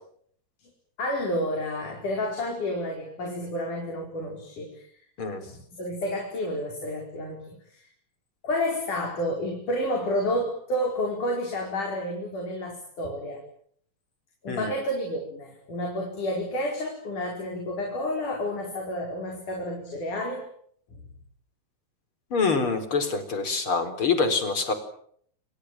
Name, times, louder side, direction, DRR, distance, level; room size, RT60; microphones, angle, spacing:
voice 1, 1.0-4.8 5.5-7.8 8.4-13.4 14.4-20.5, left 1 dB, 80° left, 1 dB, 6.3 m, -30 dB
voice 2, 22.3-24.7, left 4 dB, 40° left, 9 dB, 4.9 m, -25 dB
28.5 x 26.5 x 7.6 m, 0.65 s
omnidirectional pair, 3.6 m